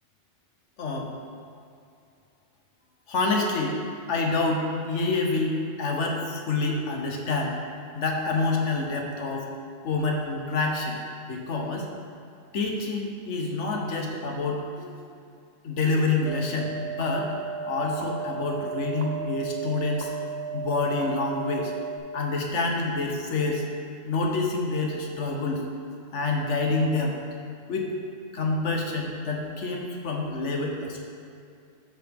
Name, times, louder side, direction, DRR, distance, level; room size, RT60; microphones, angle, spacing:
voice 1, 0.8-1.1 3.1-3.8 4.1-7.6 7.9-9.5 9.8-11.0 11.2-11.9 12.5-14.9 15.6-16.7 17.0-17.3 17.6-20.1 20.5-21.7 22.1-23.6 24.0-25.6 26.1-27.2 27.7-27.9 28.3-31.1, left 3 dB, 80° left, 1 dB, 1.2 m, -27 dB
sound 1, 16.2-22.0, right 6 dB, 80° right, 1.2 m, -34 dB
12.0 x 4.8 x 3.5 m, 2.4 s
omnidirectional pair, 1.2 m